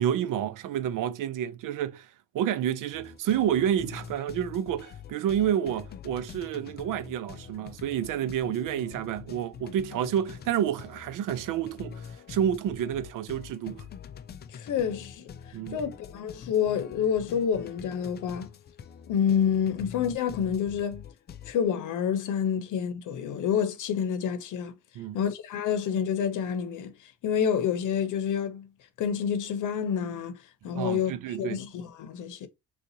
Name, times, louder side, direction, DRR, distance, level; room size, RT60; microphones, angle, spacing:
voice 1, 0.0-2.1 2.3-13.9 15.5-15.8 25.0-25.2 30.7-31.6, right 10 dB, 65° right, 0.6 m, -29 dB
sound 1, 2.9-21.6, left 7 dB, 30° left, 0.4 m, -45 dB
voice 2, 14.5-15.3 15.7-18.5 19.1-21.0 21.5-24.7 25.1-26.9 27.2-28.7 29.0-30.4 30.6-31.1 31.4-32.5, left 8 dB, 60° left, 0.8 m, -28 dB
3.7 x 2.4 x 2.8 m
cardioid pair, 125°, 34 cm